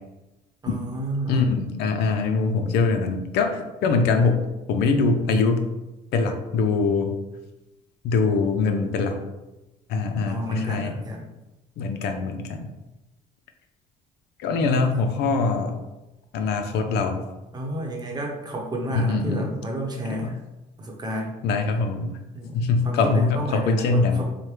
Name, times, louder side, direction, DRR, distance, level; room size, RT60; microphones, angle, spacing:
voice 1, 0.6-1.5 10.2-11.3 14.6-14.9 17.5-20.4 20.8-21.4 22.3-24.3, right 1 dB, 25° right, 0 dB, 0.8 m, -31 dB
voice 2, 1.3-5.7 6.1-7.1 8.0-9.2 9.9-11.0 11.8-12.6 14.4-15.8 16.3-17.2 18.9-19.5 20.1-20.3 21.4-22.2 22.5-24.2, left 4 dB, 80° left, 6 dB, 0.5 m, -23 dB
4.5 x 2.2 x 3.2 m, 1.0 s
cardioid pair, 110°, 17 cm